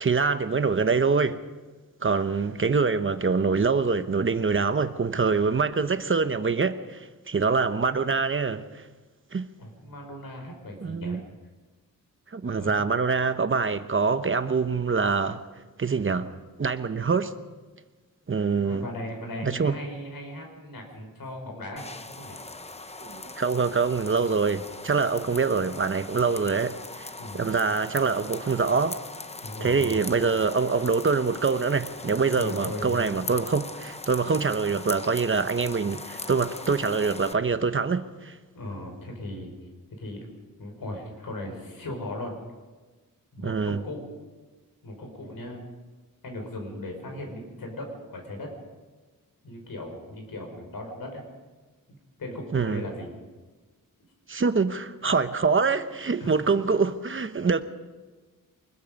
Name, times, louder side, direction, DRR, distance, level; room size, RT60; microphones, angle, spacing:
voice 1, 0.0-1.4 2.0-8.7 9.3-9.5 10.8-11.2 12.3-15.4 15.8-16.3 16.6-17.3 18.3-18.9 19.4-19.8 23.0-29.0 29.6-38.4 43.4-43.8 52.5-52.8 54.3-57.6, right 4 dB, 35° right, 0.9 m, -25 dB
voice 2, 9.6-11.2 12.5-12.7 18.6-22.4 24.1-24.2 27.2-27.4 29.4-30.1 32.3-33.1 38.5-39.5 39.9-40.2 40.6-42.3 43.3-44.0 44.8-45.7 46.2-48.5 49.4-51.2 51.9-53.1 56.2-56.3, left 1 dB, 85° left, 5.7 m, -37 dB
sound 1, 21.8-37.3, left 3 dB, 20° left, 0.8 m, -40 dB
24.0 x 21.5 x 5.3 m
wide cardioid pair, 140°, 34 cm